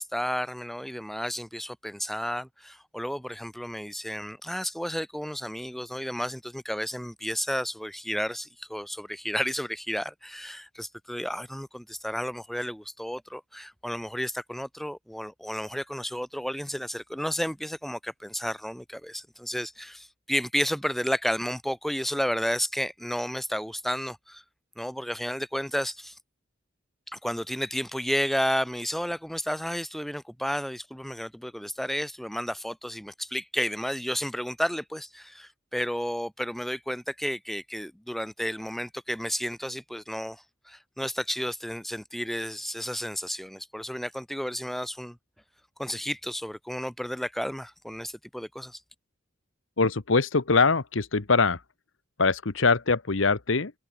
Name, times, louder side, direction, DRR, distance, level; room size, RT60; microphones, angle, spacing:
voice 1, 0.0-24.4 24.8-26.1 27.1-45.2 45.8-48.8, equal, ahead, 0.8 m, -32 dB
voice 2, 49.8-51.6 52.2-53.7, left 4 dB, 75° left, 1.2 m, -23 dB
head